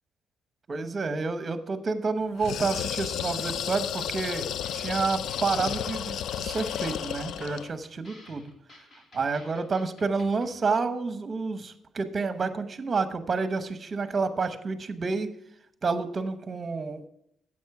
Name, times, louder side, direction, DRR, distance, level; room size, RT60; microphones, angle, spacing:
voice 1, 0.7-4.5 4.7-8.5 9.1-15.3 15.8-17.1, right 4 dB, 35° right, 10 dB, 0.9 m, -29 dB
sound 1, 2.4-7.7, left 10 dB, 75° left, 0.3 m, -32 dB
sound 2, 3.4-10.6, left 1 dB, 50° left, 2.4 m, -52 dB
9.4 x 7.4 x 4.7 m, 0.75 s
cardioid pair, 90°, 0 cm